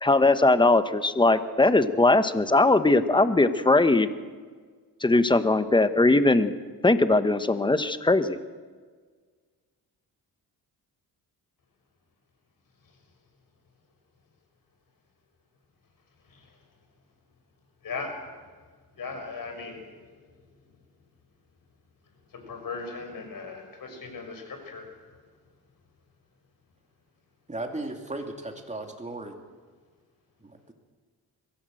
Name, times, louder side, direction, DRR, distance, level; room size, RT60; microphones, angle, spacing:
voice 1, 0.0-4.1 5.0-6.5 6.8-8.4, left 2 dB, 10° left, 11 dB, 1.1 m, -20 dB
voice 2, 19.0-19.8 22.4-24.8, left 4 dB, 55° left, 4 dB, 5.8 m, -37 dB
voice 3, 27.5-29.4 30.4-30.7, right 2 dB, 15° right, 4 dB, 2.8 m, -36 dB
22.5 x 16.0 x 7.8 m, 1.5 s
cardioid pair, 105°, 40 cm